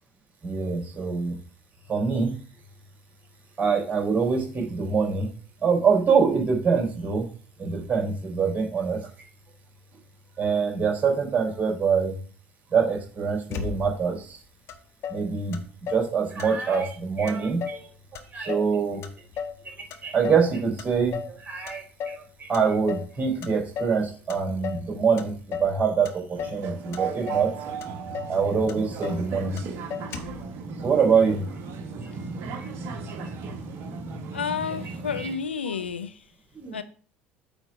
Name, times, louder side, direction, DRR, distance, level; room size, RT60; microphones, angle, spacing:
voice 1, 0.4-1.4 1.9-2.3 3.6-5.3 5.6-7.3 7.6-9.0 10.4-12.2 12.7-14.4 15.1-15.6 15.9-17.9 18.3-19.0 20.0-27.5 28.3-29.6 30.8-31.5 32.6-32.7 35.2-35.3 36.5-36.8, right 5 dB, 25° right, -1 dB, 3.6 m, -24 dB
Motor vehicle (road), 13.5-14.2 14.7-14.8 15.0-16.1 16.4-17.0 17.3-17.9 18.1-19.6 19.9-20.5 20.8-21.4 21.7-22.2 22.5-23.1 23.4-24.0 24.3-24.9 25.2-25.8 26.0-26.6 26.9-27.5 27.8-27.9 28.1-28.4 28.7-29.3 29.6-29.7 29.9-30.4, left 7 dB, 50° left, 1.0 m, -35 dB
sound 1, 26.4-35.3, right 4 dB, 50° right, 1.2 m, -36 dB
voice 2, 34.3-36.2 36.7-36.8, left 6 dB, 85° left, 10 dB, 0.6 m, -31 dB
8.2 x 3.6 x 4.9 m, 0.41 s
figure-of-eight pair, 65°, 6 cm